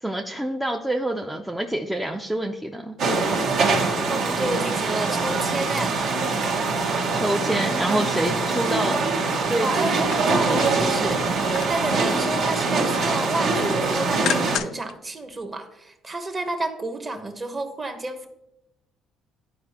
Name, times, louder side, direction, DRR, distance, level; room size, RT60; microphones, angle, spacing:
voice 1, 0.0-3.0 7.1-9.0 9.4-9.7, right 1 dB, 5° right, 2 dB, 0.5 m, -27 dB
sound 1, 3.0-14.6, right 3 dB, 60° right, 1.2 m, -23 dB
voice 2, 4.1-6.1 9.6-18.3, right 2 dB, 25° right, 6 dB, 1.0 m, -30 dB
sound 2, 9.9-11.9 12.3-12.8 13.1-14.9 15.3-15.4, left 10 dB, 65° left, 0.4 m, -34 dB
12.0 x 4.7 x 2.9 m, 0.86 s
cardioid pair, 130°, 0 cm